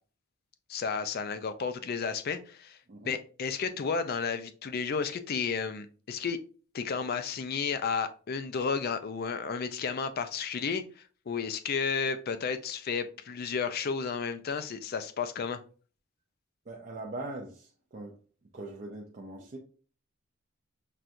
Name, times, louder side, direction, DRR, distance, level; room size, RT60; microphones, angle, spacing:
voice 1, 0.7-2.8 3.0-6.4 6.7-15.6, left 5 dB, 45° left, 0.3 m, -32 dB
voice 2, 16.7-18.1 18.5-19.6, right 2 dB, 35° right, 0.4 m, -41 dB
5.9 x 2.3 x 2.5 m
head